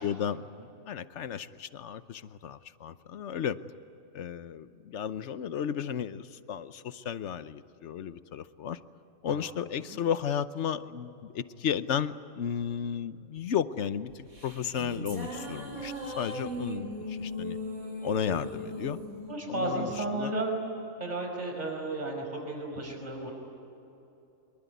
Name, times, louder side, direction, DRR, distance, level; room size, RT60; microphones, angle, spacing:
voice 1, 0.0-0.4 0.9-3.6 4.1-8.8 9.2-17.6 18.0-19.0 19.5-20.3, left 8 dB, 60° left, 13 dB, 1.1 m, -33 dB
sound 1, 14.1-20.7, equal, 85° right, 4.1 m, -38 dB
voice 2, 19.3-20.6 21.0-23.3, right 2 dB, 30° right, 1 dB, 5.5 m, -33 dB
24.5 x 22.5 x 9.4 m, 2.9 s
omnidirectional pair, 1.4 m